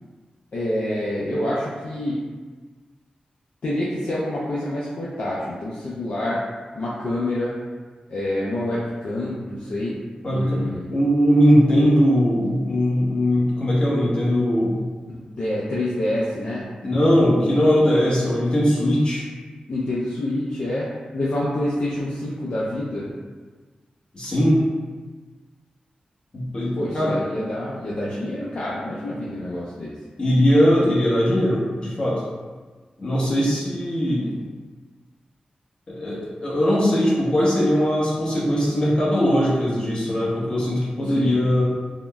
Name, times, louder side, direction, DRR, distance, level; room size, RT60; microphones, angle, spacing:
voice 1, 0.5-2.2 3.6-6.4 6.7-7.5 8.1-10.0 10.3-10.9 15.1-16.7 19.7-23.1 26.8-29.9 41.0-41.3, left 1 dB, 55° left, -7 dB, 0.4 m, -27 dB
voice 2, 10.2-10.6 10.9-14.8 16.8-19.2 24.1-24.6 26.3-27.2 30.2-32.2 33.0-34.3 35.9-41.6, equal, 35° left, -7 dB, 0.8 m, -20 dB
3.6 x 2.0 x 2.2 m, 1.4 s
wide cardioid pair, 150°, 3 cm